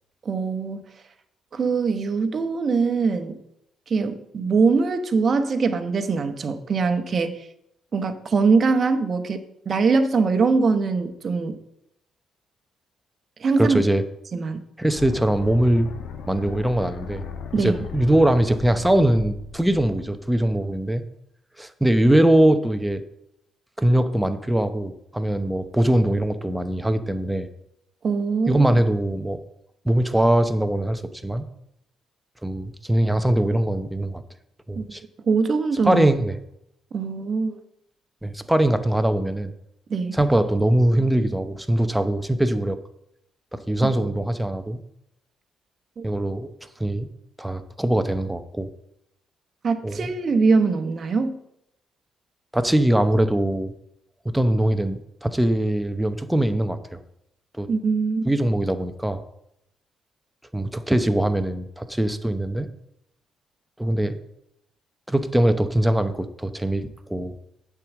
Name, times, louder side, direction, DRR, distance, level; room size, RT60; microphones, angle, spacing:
voice 1, 0.2-0.8 1.5-3.4 3.9-7.5 7.9-11.6 13.4-13.8 14.3-14.6 17.5-17.8 28.0-28.7 34.8-34.9 35.3-36.0 36.9-37.6 39.9-40.2 43.8-43.9 46.0-46.1 49.6-51.4 57.7-58.3, right 4 dB, 45° right, 7 dB, 1.0 m, -22 dB
voice 2, 13.6-14.0 14.8-15.9 16.3-17.3 17.6-21.0 21.6-23.0 23.8-27.5 28.5-29.4 29.8-31.5 32.4-34.2 34.7-35.0 35.8-36.4 38.2-39.5 40.1-42.8 43.5-44.8 46.0-46.5 46.8-47.1 47.4-48.7 49.8-50.1 52.5-53.7 54.2-57.0 57.6-57.7 58.2-59.2 60.5-62.7 63.8-64.2 65.1-67.4, right 1 dB, 5° right, 9 dB, 0.8 m, -22 dB
sound 1, 15.0-20.9, left 6 dB, 85° left, 1.1 m, -37 dB
8.6 x 4.7 x 7.3 m, 0.79 s
cardioid pair, 90°, 0 cm